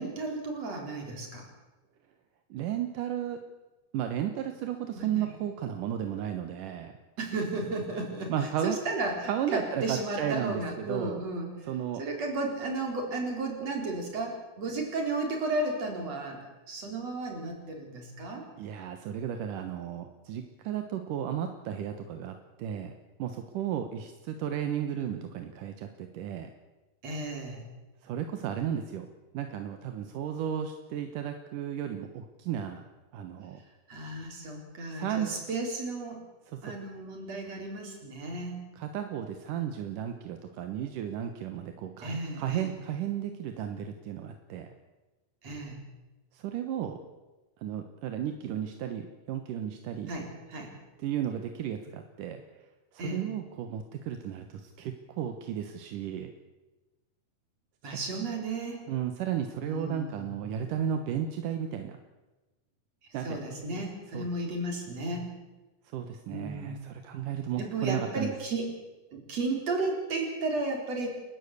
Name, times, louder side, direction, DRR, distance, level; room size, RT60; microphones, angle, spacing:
voice 1, 0.0-1.5 5.0-5.3 7.2-11.5 12.0-16.4 16.7-18.4 27.0-27.6 33.9-36.2 36.6-38.6 42.0-42.7 45.4-45.8 50.1-50.7 53.0-53.2 57.8-58.8 59.6-60.4 63.2-65.2 66.3-66.9 67.6-68.7 69.1-71.1, right 2 dB, 50° right, 1 dB, 5.3 m, -34 dB
voice 2, 2.5-3.4 3.9-6.9 8.3-8.8 9.2-11.2 11.7-12.0 18.6-22.9 23.2-26.5 28.0-29.1 29.3-32.8 33.1-33.6 34.9-35.3 36.5-36.6 38.8-44.7 46.3-47.0 47.6-50.1 51.0-52.4 52.9-56.3 57.9-58.0 58.9-62.0 63.1-63.3 63.7-63.8 64.1-64.3 65.9-68.3, right 9 dB, 80° right, 6 dB, 2.8 m, -34 dB
29.5 x 12.0 x 8.4 m, 1.1 s
omnidirectional pair, 3.7 m